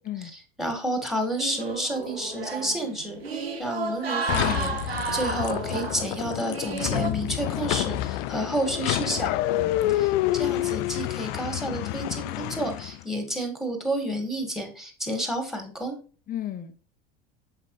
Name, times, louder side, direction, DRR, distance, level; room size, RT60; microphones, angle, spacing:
voice 1, 0.6-9.4 9.9-16.0, right 1 dB, ahead, 2.2 m, -30 dB
sound 1, 1.4-7.1, right 4 dB, 80° right, 1.1 m, -32 dB
sound 2, 4.3-13.0, left 14 dB, 50° left, 0.5 m, -28 dB
voice 2, 9.5-10.0 16.3-16.7, left 11 dB, 30° left, 1.1 m, -35 dB
8.0 x 5.5 x 3.3 m
figure-of-eight pair, 75°, 30 cm